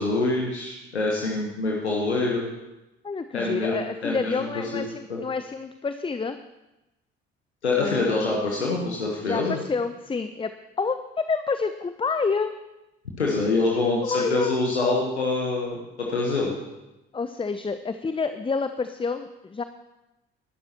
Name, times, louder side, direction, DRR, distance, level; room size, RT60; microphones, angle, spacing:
voice 1, 0.0-2.5 3.3-3.7 4.0-4.5 4.7-4.8 5.1-5.2 7.6-9.6 13.2-16.5, left 3 dB, 85° left, -2 dB, 1.3 m, -25 dB
voice 2, 3.0-6.4 7.8-8.3 9.2-10.5 10.8-12.5 14.0-14.6 17.1-19.6, left 4 dB, 15° left, 10 dB, 0.7 m, -28 dB
19.0 x 12.0 x 3.0 m, 0.99 s
figure-of-eight pair, 45°, 33 cm